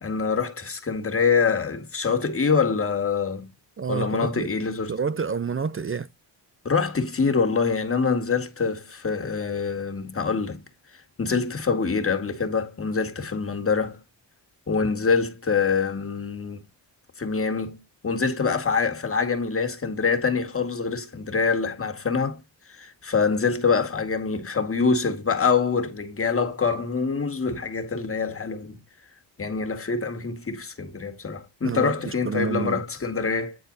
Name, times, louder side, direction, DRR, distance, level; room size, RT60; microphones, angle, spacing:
voice 1, 0.0-3.5 3.9-5.0 6.6-10.6 10.9-14.0 14.7-16.6 17.2-22.4 22.7-28.8 29.4-33.6, left 5 dB, 30° left, 1.9 m, -25 dB
voice 2, 3.8-4.5 4.9-6.1 31.6-32.8, right 5 dB, 30° right, 0.6 m, -28 dB
9.6 x 4.4 x 3.9 m
cardioid pair, 100°, 44 cm